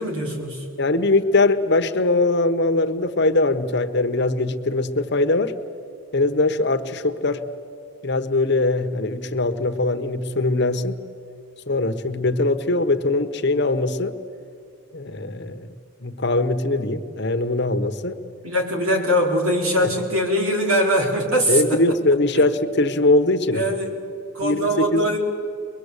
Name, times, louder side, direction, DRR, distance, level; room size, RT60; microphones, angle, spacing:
voice 1, 0.0-0.7 18.4-22.0 22.3-22.5 23.5-24.0 24.3-25.2, equal, 80° right, 1 dB, 4.3 m, -22 dB
voice 2, 0.8-5.6 6.1-7.4 8.0-11.0 11.7-14.1 14.9-15.7 16.0-18.2 21.5-23.6 24.4-25.1, left 2 dB, 50° left, 8 dB, 1.1 m, -21 dB
23.0 x 22.5 x 8.3 m, 2.5 s
head